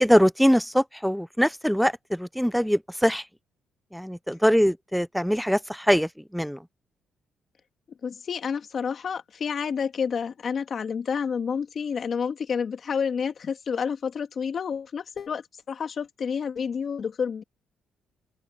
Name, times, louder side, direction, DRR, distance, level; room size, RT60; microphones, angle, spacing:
voice 1, 0.0-3.2 3.9-6.6, equal, ahead, 0.5 m, -22 dB
voice 2, 8.0-17.4, left 6 dB, 50° left, 2.0 m, -29 dB
open air
cardioid pair, 90°, 0 cm